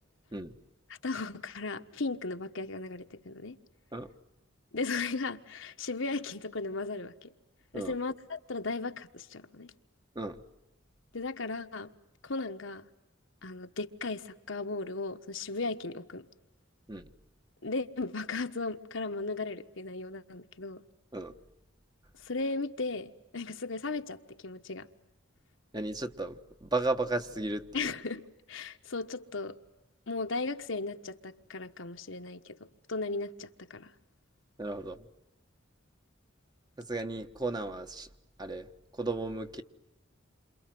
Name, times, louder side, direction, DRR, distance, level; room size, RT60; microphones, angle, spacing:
voice 1, 0.9-3.6 4.7-7.3 7.7-9.7 11.1-11.9 12.2-12.9 13.4-16.3 17.6-20.8 22.2-24.9 27.7-29.6 30.1-33.9, left 3 dB, 70° left, 1.4 m, -36 dB
voice 2, 25.7-27.7 34.6-35.0 36.9-38.1 38.4-38.7 38.9-39.6, right 2 dB, 20° right, 1.3 m, -34 dB
29.0 x 26.5 x 7.7 m
head